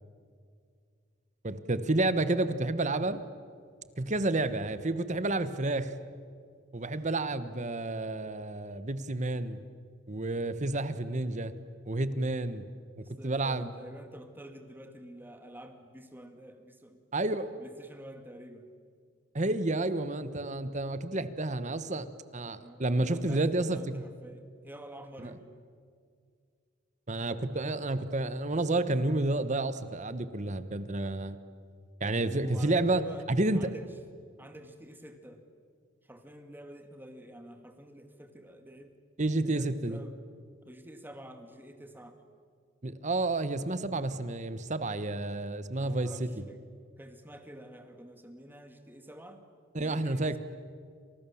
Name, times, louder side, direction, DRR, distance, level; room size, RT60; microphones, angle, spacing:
voice 1, 1.4-3.2 4.0-5.9 6.7-9.6 10.1-11.5 11.9-12.6 13.0-13.7 17.1-17.5 19.3-24.0 25.2-25.3 27.1-31.4 32.0-33.7 39.2-40.0 42.8-46.3 49.7-50.4, right 2 dB, 40° right, 13 dB, 1.2 m, -30 dB
voice 2, 13.0-17.0 17.6-18.7 22.6-25.5 32.1-33.3 33.5-33.9 34.4-35.4 36.0-38.9 39.4-40.2 40.6-42.2 45.8-46.6 47.0-49.4 49.7-50.4, right 1 dB, 10° right, 6 dB, 2.3 m, -49 dB
29.0 x 27.0 x 7.2 m, 2.1 s
head